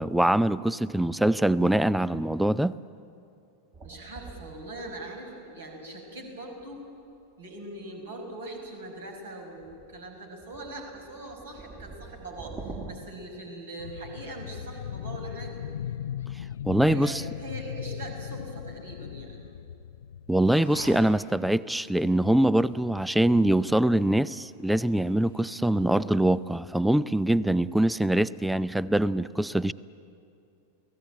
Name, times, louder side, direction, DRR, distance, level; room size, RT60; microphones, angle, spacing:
voice 1, 0.0-2.8 16.7-17.2 20.3-29.7, right 1 dB, 5° right, 20 dB, 0.5 m, -23 dB
sound 1, 3.7-5.6 6.6-6.9 9.6-12.9, right 4 dB, 25° right, 2.7 m, -45 dB
voice 2, 3.8-6.8 7.4-15.5 16.6-19.5, right 2 dB, 65° right, 2 dB, 5.7 m, -41 dB
sound 2, 13.8-20.6 21.1-21.2, left 9 dB, 65° left, 0.5 m, -38 dB
sound 3, 20.4-26.5, equal, 90° right, 8.0 m, -48 dB
29.0 x 18.0 x 9.0 m, 2.6 s
figure-of-eight pair, 90°, 0 cm